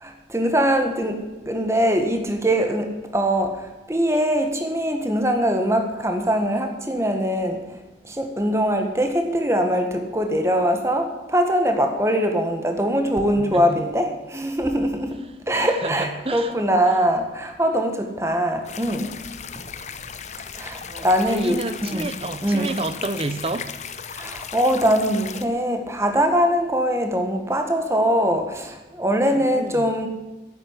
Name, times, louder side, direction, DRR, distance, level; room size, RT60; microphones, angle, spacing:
voice 1, 0.0-7.8 8.0-15.2 15.5-19.1 20.5-22.1 22.4-22.7 24.1-30.1, equal, 15° right, 5 dB, 1.7 m, -22 dB
voice 2, 13.4-13.8 15.6-16.5 20.8-23.7 29.3-29.9, right 2 dB, 35° right, 11 dB, 0.9 m, -30 dB
sound 1, 18.6-25.5, left 7 dB, 40° left, 0.8 m, -36 dB
10.5 x 9.2 x 9.6 m, 1.1 s
head